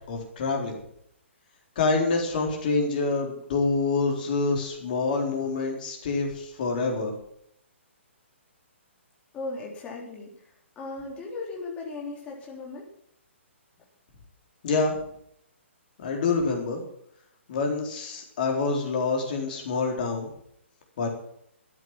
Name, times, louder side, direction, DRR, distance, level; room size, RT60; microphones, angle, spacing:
voice 1, 0.1-0.8 1.8-7.1 14.6-15.0 16.0-16.8 17.5-20.3 21.0-21.1, left 3 dB, 40° left, 2 dB, 4.1 m, -26 dB
voice 2, 9.3-12.9 13.8-13.9, left 3 dB, 15° left, -2 dB, 3.7 m, -37 dB
13.0 x 9.1 x 7.6 m, 0.70 s
figure-of-eight pair, 125°, 7 cm